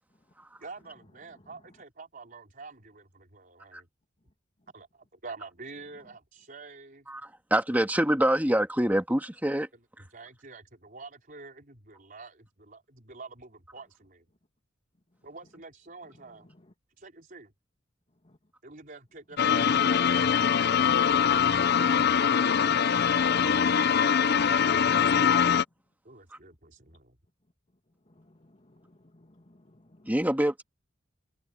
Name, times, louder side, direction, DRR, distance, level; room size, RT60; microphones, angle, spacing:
voice 1, 0.6-3.9 4.7-7.1 10.1-14.2 15.2-16.5 17.0-17.5 18.6-21.0 21.5-22.4 23.2-25.2 26.0-27.2, right 4 dB, 50° right, 4.6 m, -47 dB
voice 2, 7.1-9.7 20.8-20.9 30.1-30.6, right 1 dB, 10° right, 1.9 m, -26 dB
sound 1, 19.4-25.6, left 7 dB, 55° left, 0.6 m, -23 dB
voice 3, 28.1-30.1, left 1 dB, 35° left, 2.4 m, -59 dB
open air
head